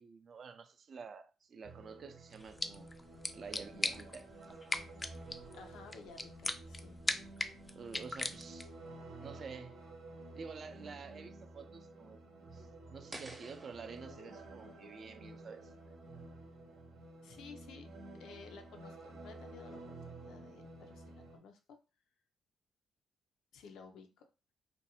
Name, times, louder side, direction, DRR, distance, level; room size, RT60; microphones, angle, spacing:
voice 1, 0.0-2.9 3.3-4.3 7.7-8.7 9.2-9.8 10.3-12.2 12.5-16.0, right 5 dB, 55° right, 0.3 m, -49 dB
sound 1, 1.6-21.4, right 2 dB, 90° right, 0.7 m, -52 dB
sound 2, 2.3-8.8, left 2 dB, 25° left, 0.3 m, -41 dB
voice 2, 5.5-7.0 17.2-17.9 18.2-21.8 23.5-24.3, left 5 dB, 85° left, 0.4 m, -54 dB
sound 3, 13.1-16.1, right 1 dB, 25° right, 0.7 m, -53 dB
2.5 x 2.2 x 2.8 m
cardioid pair, 75°, 0 cm